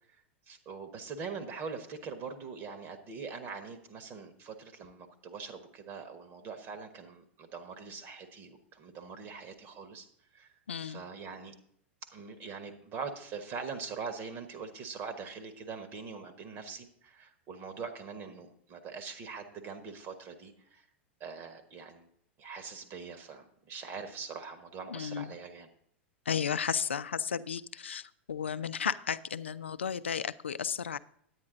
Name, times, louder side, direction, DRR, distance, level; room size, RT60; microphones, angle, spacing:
voice 1, 0.1-10.1 10.3-11.5 12.1-20.9 21.2-22.1 22.4-25.7, right 5 dB, 35° right, 8 dB, 1.4 m, -43 dB
voice 2, 10.7-11.0 24.9-25.3 26.3-31.0, left 7 dB, 75° left, 15 dB, 0.5 m, -33 dB
9.5 x 9.4 x 3.8 m, 0.68 s
figure-of-eight pair, 90°, 6 cm